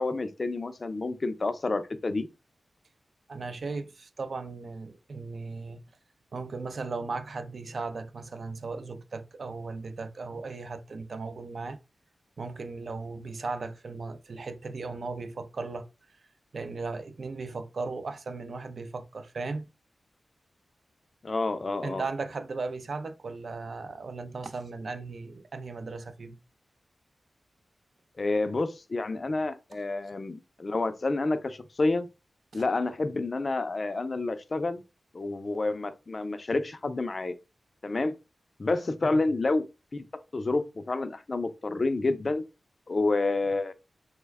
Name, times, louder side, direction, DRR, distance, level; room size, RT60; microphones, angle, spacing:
voice 1, 0.0-2.3 21.2-22.0 28.2-32.1 32.5-34.8 35.1-37.3 37.8-38.1 38.6-39.6 39.9-40.0 40.3-42.4 42.9-43.7, left 3 dB, 40° left, 0.4 m, -29 dB
voice 2, 3.3-5.8 6.3-11.8 12.4-16.2 16.5-19.7 21.8-26.4 32.5-32.6 39.0-39.2, right 3 dB, 60° right, 0.4 m, -37 dB
3.1 x 2.1 x 3.4 m
wide cardioid pair, 110°, 0 cm